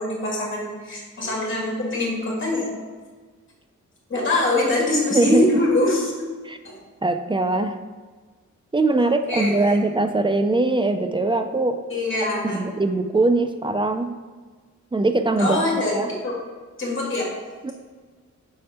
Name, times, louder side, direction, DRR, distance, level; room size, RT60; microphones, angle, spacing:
voice 1, 0.0-2.7 4.1-6.3 6.6-6.8 9.3-9.8 11.9-12.6 15.4-15.9 16.2-16.3 16.8-17.3, left 2 dB, 40° left, -3 dB, 2.1 m, -23 dB
voice 2, 5.1-5.6 6.5-6.6 7.0-7.8 8.7-11.8 12.4-14.1 14.9-15.6 15.9-16.1 17.6-17.7, right 2 dB, 15° right, 7 dB, 0.3 m, -21 dB
6.7 x 4.3 x 4.1 m, 1.4 s
wide cardioid pair, 145°, 30 cm